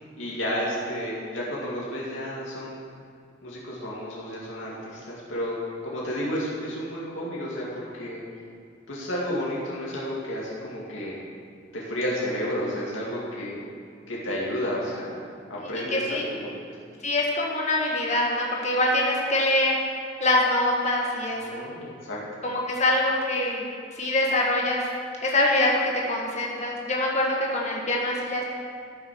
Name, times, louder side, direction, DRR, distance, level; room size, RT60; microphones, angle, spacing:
voice 1, 0.2-2.8 3.4-5.5 5.8-8.2 8.9-11.2 11.7-13.6 14.1-15.2 15.5-16.6 21.3-22.2, equal, 90° left, -6 dB, 2.3 m, -31 dB
voice 2, 15.9-16.2 17.0-19.7 20.2-21.7 22.4-23.6 24.0-24.8 25.2-28.4, left 1 dB, 35° left, -2 dB, 1.5 m, -24 dB
13.5 x 6.2 x 6.2 m, 2.2 s
head